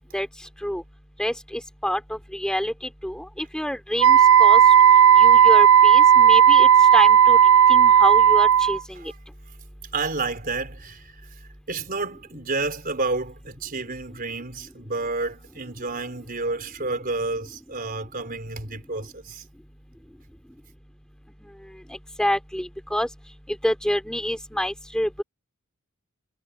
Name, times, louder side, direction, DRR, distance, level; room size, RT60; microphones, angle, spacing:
voice 1, 1.2-2.7 3.0-4.6 5.2-7.4 7.7-8.8 22.2-23.1 23.6-25.2, equal, 5° left, 3.1 m, -27 dB
Wind instrument woodwind instrument, 4.0-8.8, right 8 dB, 60° right, 0.4 m, -13 dB
voice 2, 9.9-11.1 11.7-19.4, right 3 dB, 40° right, 4.5 m, -30 dB
head